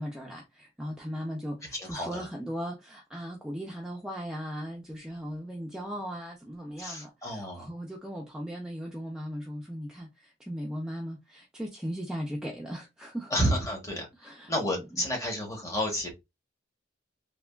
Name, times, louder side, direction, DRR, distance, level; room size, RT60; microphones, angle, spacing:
voice 1, 0.0-13.3 14.2-15.0, equal, 5° right, 0.4 m, -38 dB
voice 2, 1.8-2.3 6.8-7.7 13.3-14.1 14.5-16.1, equal, 15° left, 0.9 m, -30 dB
3.3 x 2.2 x 2.2 m
head